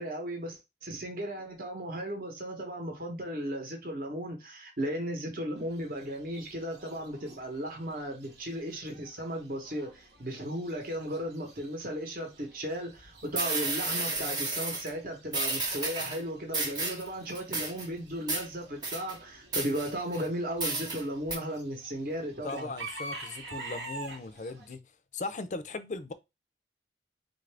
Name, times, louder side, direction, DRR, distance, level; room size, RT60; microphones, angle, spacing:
voice 1, 0.0-22.7, equal, 55° right, 0.9 m, -36 dB
Chicken rooster / Bird, 5.6-24.7, right 2 dB, 85° right, 1.0 m, -49 dB
sound 1, 13.0-13.1 13.3-14.9 15.3-16.2 16.5-17.1 17.3-17.9 18.3-18.4 18.8-19.1 19.5-20.2 20.6-21.0 21.3-21.4, right 3 dB, 25° right, 0.8 m, -32 dB
voice 2, 22.4-24.8 25.1-26.1, left 3 dB, 45° left, 0.4 m, -38 dB
3.7 x 2.5 x 3.3 m
head